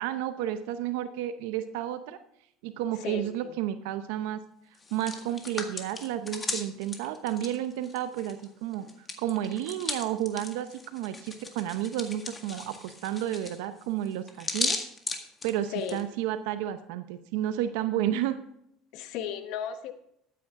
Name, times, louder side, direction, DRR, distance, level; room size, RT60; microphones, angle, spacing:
voice 1, 0.0-2.2 2.6-4.4 4.9-14.8 15.4-18.4, right 11 dB, 85° right, 10 dB, 0.7 m, -31 dB
voice 2, 3.0-3.6 15.7-16.0 18.9-19.9, left 8 dB, 70° left, 9 dB, 1.1 m, -35 dB
Hands, 4.7-8.4 8.7-16.0, left 3 dB, 25° left, 1.8 m, -36 dB
13.0 x 9.4 x 3.6 m, 0.72 s
supercardioid pair, 100°, 0 cm